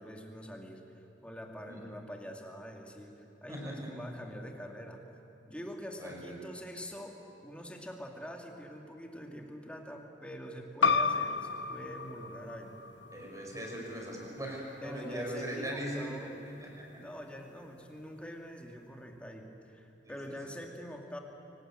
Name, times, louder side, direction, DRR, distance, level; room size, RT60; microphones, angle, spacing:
voice 1, 0.0-5.0 5.5-12.8 14.8-16.4 16.9-21.2, equal, 5° left, 2 dB, 2.3 m, -45 dB
voice 2, 6.0-6.4 13.1-16.3 16.6-16.9 20.0-20.3, right 1 dB, 20° right, -1 dB, 5.5 m, -40 dB
sound 1, 10.8-16.0, left 5 dB, 75° left, 0.8 m, -33 dB
24.0 x 19.5 x 9.0 m, 2.9 s
head